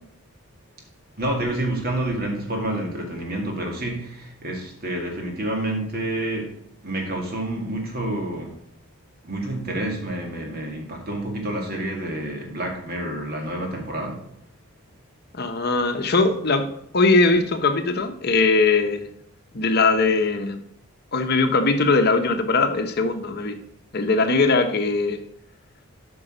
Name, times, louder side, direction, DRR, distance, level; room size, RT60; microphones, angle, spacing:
voice 1, 1.2-6.6 6.8-8.6 9.2-14.2, right 1 dB, 45° right, 1 dB, 2.3 m, -28 dB
voice 2, 15.3-19.1 19.5-20.6 21.1-23.6 23.9-25.2, left 3 dB, 50° left, 6 dB, 0.9 m, -20 dB
8.5 x 5.5 x 5.0 m, 0.71 s
head